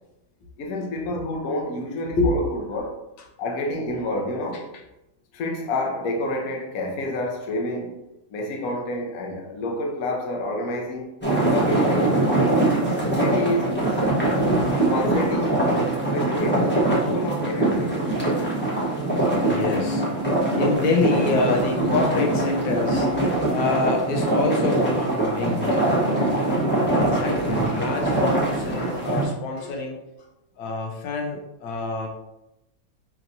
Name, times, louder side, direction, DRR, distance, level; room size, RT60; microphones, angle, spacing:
voice 1, 0.6-3.0 3.4-4.7 5.3-8.0 8.3-11.1 11.5-12.3 13.0-13.8 14.2-14.5 14.9-15.7 16.0-17.9, left 1 dB, 60° left, 1 dB, 1.0 m, -29 dB
sound 1, 11.2-29.2, right 2 dB, 10° left, 0.7 m, -23 dB
sound 2, 17.3-24.8, left 5 dB, 55° right, 0.9 m, -35 dB
voice 2, 19.4-20.0 20.6-26.4 26.9-30.0 30.6-32.1, left 3 dB, 90° left, 1 dB, 1.6 m, -26 dB
5.6 x 2.9 x 2.6 m, 0.90 s
omnidirectional pair, 2.1 m